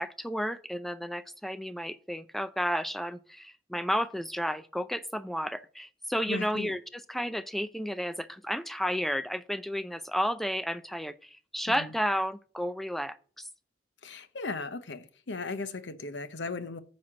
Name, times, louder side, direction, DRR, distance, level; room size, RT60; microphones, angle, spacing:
voice 1, 0.0-6.8 7.1-13.5, equal, ahead, 0.4 m, -32 dB
voice 2, 6.3-6.7 11.7-11.9 14.0-16.8, left 3 dB, 80° left, 0.9 m, -37 dB
9.5 x 4.3 x 7.4 m
head